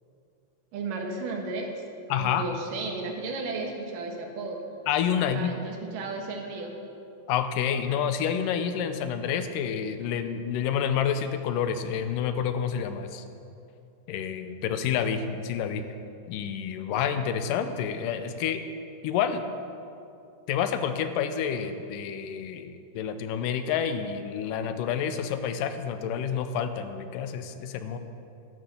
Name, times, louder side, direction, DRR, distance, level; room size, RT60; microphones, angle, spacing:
voice 1, 0.7-1.7 2.2-4.6 5.3-6.7, right 3 dB, 80° right, 2 dB, 3.0 m, -34 dB
voice 2, 2.1-2.4 4.9-5.5 7.3-13.2 14.1-15.8 16.3-18.6 19.0-19.4 20.5-28.0, left 8 dB, 80° left, 9 dB, 2.4 m, -28 dB
12.0 x 9.9 x 7.1 m, 2.7 s
omnidirectional pair, 3.8 m